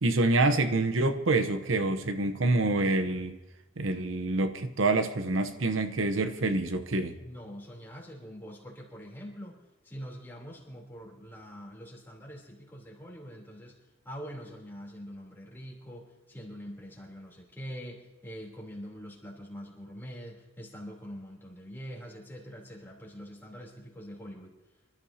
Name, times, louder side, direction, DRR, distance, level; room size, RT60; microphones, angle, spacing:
voice 1, 0.0-3.4 3.8-7.2, right 2 dB, 75° right, 8 dB, 0.9 m, -26 dB
voice 2, 7.2-9.6 9.8-13.8 14.0-24.5, equal, 10° left, -3 dB, 3.3 m, -44 dB
25.5 x 13.5 x 2.8 m, 0.99 s
head